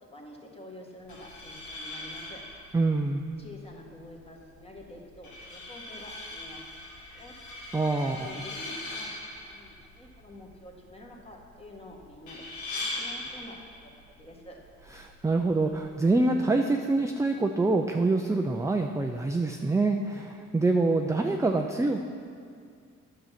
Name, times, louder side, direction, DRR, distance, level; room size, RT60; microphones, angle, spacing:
voice 1, 0.0-2.4 3.4-6.6 7.1-7.3 8.1-9.1 9.4-13.9 14.2-14.6, left 1 dB, 20° left, 0 dB, 1.7 m, -48 dB
sound 1, 1.0-16.0, left 2 dB, 90° left, 1.8 m, -41 dB
voice 2, 2.7-3.2 7.7-8.3 15.0-22.1, right 2 dB, 10° right, 3 dB, 0.5 m, -25 dB
9.5 x 6.9 x 5.8 m, 2.2 s
cardioid pair, 90°, 30 cm